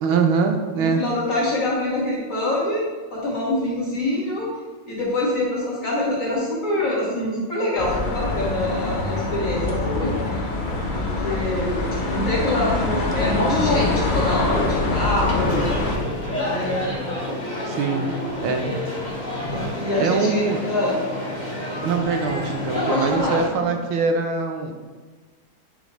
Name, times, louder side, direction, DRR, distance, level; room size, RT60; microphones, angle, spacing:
voice 1, 0.0-1.0 17.7-18.1 18.4-18.7 20.0-20.6 21.7-24.7, right 4 dB, 80° right, 4 dB, 1.6 m, -23 dB
voice 2, 0.7-2.8 3.1-4.5 4.9-10.5 10.9-15.6 16.4-16.8 17.7-18.5 19.5-21.0 22.7-23.7, left 1 dB, 40° left, -6 dB, 2.4 m, -25 dB
sound 1, 7.8-16.0, left 3 dB, 55° left, 0.5 m, -24 dB
sound 2, 13.9-23.5, left 1 dB, 25° left, 1.5 m, -29 dB
8.9 x 4.9 x 3.2 m, 1.4 s
omnidirectional pair, 2.2 m